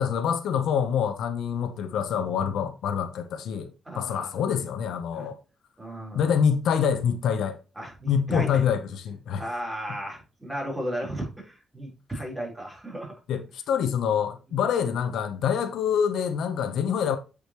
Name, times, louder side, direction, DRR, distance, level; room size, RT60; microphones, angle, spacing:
voice 1, 0.0-3.7 3.9-5.3 6.1-7.6 8.1-9.4 13.3-17.2, left 7 dB, 85° left, 0.8 m, -26 dB
voice 2, 3.9-4.3 5.1-5.3 5.8-6.3 7.8-8.6 9.3-13.1, right 1 dB, 10° right, 3.8 m, -35 dB
8.3 x 5.0 x 3.0 m
cardioid pair, 95°, 0 cm